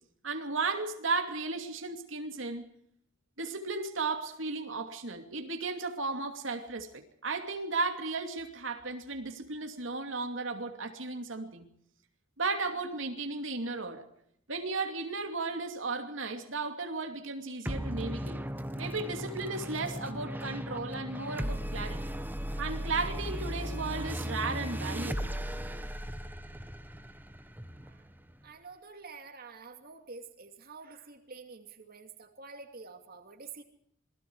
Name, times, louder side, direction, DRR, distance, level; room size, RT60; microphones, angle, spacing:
voice 1, 0.2-2.6 3.4-11.7 12.4-14.1 14.5-18.4 18.8-22.1 22.6-25.4, right 3 dB, 85° right, 2.7 m, -35 dB
sound 1, 17.7-28.4, equal, 10° right, 1.3 m, -37 dB
voice 2, 28.4-33.6, right 4 dB, 50° right, 2.6 m, -48 dB
27.5 x 20.5 x 4.8 m
head